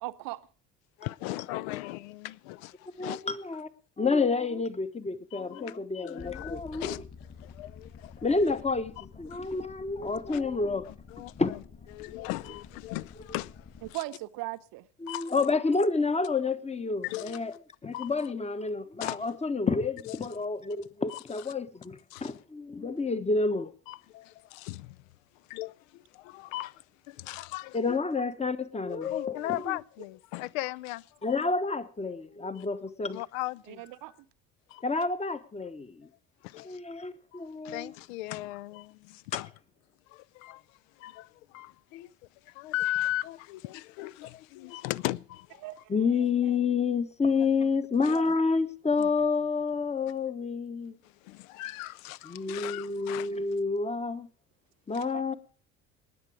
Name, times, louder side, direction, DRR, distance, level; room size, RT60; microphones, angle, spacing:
voice 1, 0.0-0.4 13.9-14.8 33.7-34.1 45.6-45.8 55.1-55.2, right 19 dB, 55° right, 0.8 m, -37 dB
voice 2, 1.0-3.2 5.3-5.8 6.0-7.0 7.4-8.6 9.0-9.1 9.3-9.5 10.0-10.4 10.9-11.6 11.9-14.0 15.1-15.3 17.0-17.4 17.9-18.3 19.0-19.2 20.1-20.4 21.1-21.2 22.1-22.3 23.9-25.0 25.5-28.0 29.0-31.1 32.6-32.7 33.1-33.9 34.7-34.8 36.4-36.8 37.3-37.4 37.6-39.5 40.1-40.6 41.0-42.1 42.5-45.6 48.0-48.3 49.0-49.1 51.0-53.3, left 17 dB, 65° left, 0.6 m, -38 dB
voice 3, 3.0-3.7 4.0-7.0 8.2-10.9 11.2-11.6 15.0-17.5 17.8-23.7 27.7-29.8 31.2-33.2 34.8-36.1 36.6-37.9 45.9-51.0 52.2-54.3 54.9-55.3, left 4 dB, 15° left, 1.1 m, -29 dB
sound 1, 6.2-13.9, left 5 dB, 40° left, 6.8 m, -49 dB
19.5 x 8.4 x 4.8 m
figure-of-eight pair, 55°, 43 cm